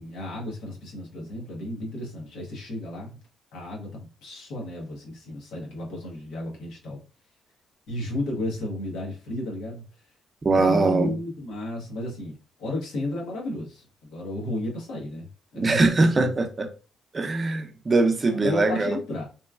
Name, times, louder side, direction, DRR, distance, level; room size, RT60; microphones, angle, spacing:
voice 1, 0.0-3.2 3.5-7.0 7.9-9.8 10.5-15.9 16.2-16.3 18.3-19.2, left 1 dB, 90° left, 0.9 m, -33 dB
voice 2, 10.4-11.1 15.6-16.7 17.1-19.0, right 3 dB, 30° right, 0.5 m, -22 dB
3.0 x 2.3 x 2.3 m
cardioid pair, 90°, 0 cm